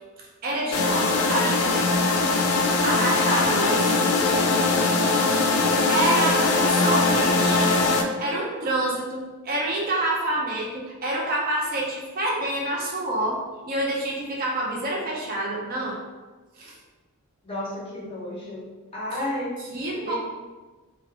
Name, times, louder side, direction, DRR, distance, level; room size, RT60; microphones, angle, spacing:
voice 1, 0.0-2.1 2.8-4.0 5.9-7.7 8.2-16.0 16.6-16.8 19.1-19.3 19.7-20.1, right 1 dB, 40° right, -2 dB, 0.4 m, -27 dB
sound 1, 0.7-8.0, left 3 dB, 75° left, 0.3 m, -21 dB
voice 2, 17.4-18.7 18.9-19.5 20.0-20.1, left 1 dB, 25° left, -6 dB, 0.6 m, -32 dB
2.3 x 2.0 x 2.9 m, 1.3 s
head